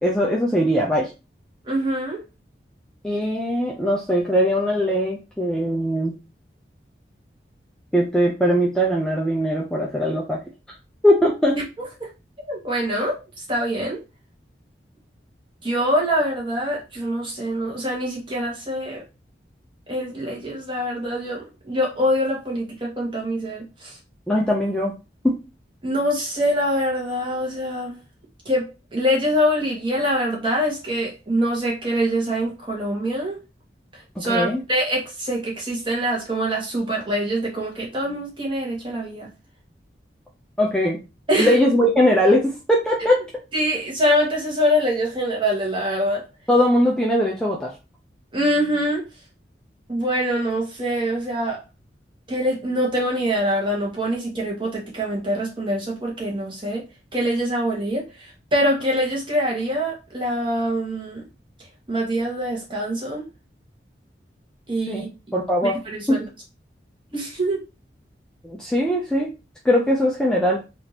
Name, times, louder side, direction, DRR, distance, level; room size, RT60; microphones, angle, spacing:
voice 1, 0.0-1.1 3.0-6.2 7.9-10.4 11.0-11.6 24.3-24.9 25.2-25.4 34.3-34.6 40.6-41.0 41.4-43.2 46.5-47.7 64.9-65.0 65.3-65.8 66.1-66.2 68.4-69.3 69.6-70.6, equal, 5° left, 0.5 m, -20 dB
voice 2, 1.7-2.2 12.0-12.1 12.5-13.2 13.5-14.0 15.6-19.0 19.9-24.0 25.8-28.0 28.4-33.4 34.2-39.3 41.3-41.6 43.0-43.1 43.5-46.2 48.3-49.0 49.9-51.6 52.3-56.9 57.1-61.2 61.9-63.2 64.7-65.1 65.6-66.3 67.1-67.6, equal, 30° right, 1.2 m, -24 dB
3.5 x 2.5 x 2.8 m
head